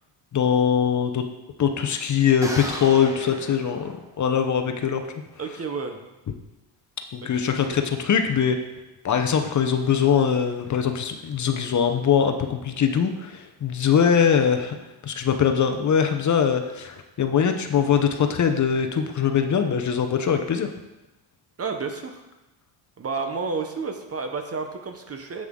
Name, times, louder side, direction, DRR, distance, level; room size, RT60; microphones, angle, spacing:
voice 1, 0.3-1.3 1.6-5.0 7.1-8.6 9.0-14.8 15.0-20.7, left 7 dB, 40° left, 6 dB, 0.8 m, -22 dB
sound 1, 2.4-4.4, right 1 dB, 5° right, 1.2 m, -35 dB
voice 2, 5.4-6.0 7.4-7.8 21.6-22.2 23.0-25.5, right 4 dB, 35° right, 5 dB, 0.9 m, -31 dB
9.6 x 7.6 x 3.7 m, 1.0 s
cardioid pair, 130°, 44 cm